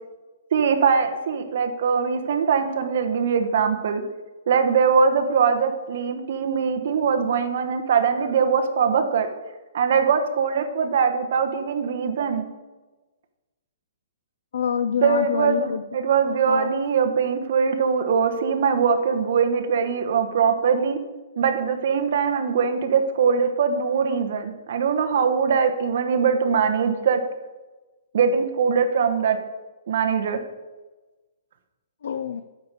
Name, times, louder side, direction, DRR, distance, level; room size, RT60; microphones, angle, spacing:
voice 1, 0.5-4.0 4.5-9.3 9.7-12.5 15.0-21.0 21.4-27.2 28.1-29.4 29.9-30.4, right 6 dB, 50° right, 5 dB, 1.1 m, -22 dB
voice 2, 14.5-15.8 16.5-16.7 32.0-32.4, left 7 dB, 70° left, 11 dB, 0.4 m, -26 dB
9.4 x 6.7 x 4.9 m, 1.2 s
hypercardioid pair, 170°, 0 cm